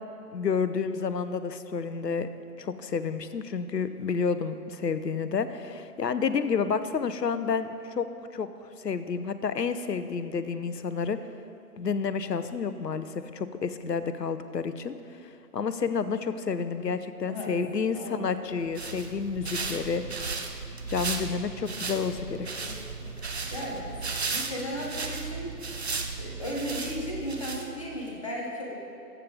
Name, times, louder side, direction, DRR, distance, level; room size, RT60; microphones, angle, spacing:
voice 1, 0.3-2.3 2.6-8.5 8.8-11.2 11.8-14.9 15.2-20.0 20.9-22.5, left 5 dB, 80° left, 12 dB, 0.7 m, -30 dB
voice 2, 17.3-17.6 17.9-18.4 19.6-19.7 22.6-25.5 26.2-28.7, equal, 20° left, -3 dB, 0.9 m, -36 dB
sound 1, 18.5-28.0, right 4 dB, 40° right, 0.6 m, -35 dB
14.0 x 7.0 x 3.9 m, 2.7 s
figure-of-eight pair, 150°, 49 cm